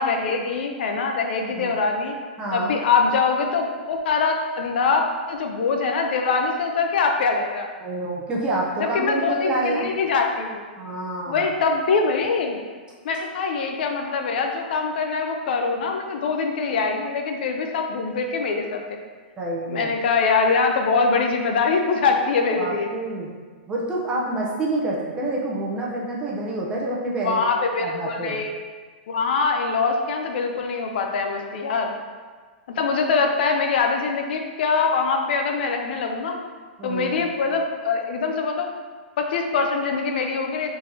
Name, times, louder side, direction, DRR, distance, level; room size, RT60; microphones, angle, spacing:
voice 1, 0.0-2.2 2.5-7.7 8.8-10.6 11.3-12.6 13.0-19.0 19.7-22.9 27.2-28.5 29.1-32.0 32.7-36.4 36.8-38.7 39.2-40.7, left 4 dB, 65° left, 3 dB, 0.5 m, -23 dB
voice 2, 2.4-2.7 7.8-9.9 10.8-11.5 19.4-20.0 22.6-23.3 23.7-27.4 27.8-28.4 36.8-37.3, right 2 dB, 15° right, -3 dB, 0.7 m, -27 dB
3.8 x 2.8 x 3.9 m, 1.5 s
hypercardioid pair, 150°, 6 cm